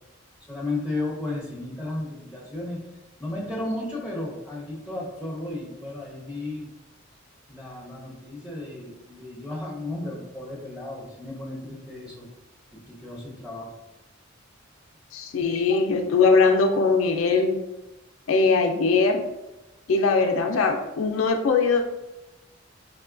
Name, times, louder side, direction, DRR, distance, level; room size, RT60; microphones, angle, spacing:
voice 1, 0.5-2.8 3.2-6.7 7.5-12.3 12.7-13.7, left 2 dB, 5° right, -6 dB, 1.1 m, -34 dB
voice 2, 15.1-17.6 18.3-19.3 19.9-21.8, left 4 dB, 85° left, 4 dB, 0.4 m, -21 dB
4.7 x 2.2 x 2.4 m, 0.98 s
head